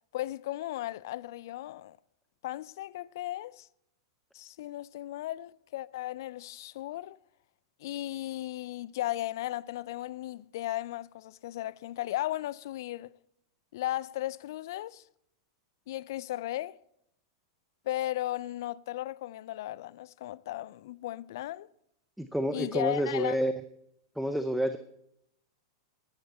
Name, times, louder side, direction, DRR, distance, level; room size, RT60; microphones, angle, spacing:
voice 1, 0.1-2.0 2.4-3.7 4.3-7.2 7.8-13.1 13.7-15.0 15.9-16.8 17.8-21.7 22.5-23.4, left 15 dB, 65° left, 0.4 m, -36 dB
voice 2, 22.2-23.5 24.2-24.8, equal, ahead, 0.8 m, -29 dB
11.0 x 11.0 x 4.2 m
hypercardioid pair, 105°, 2 cm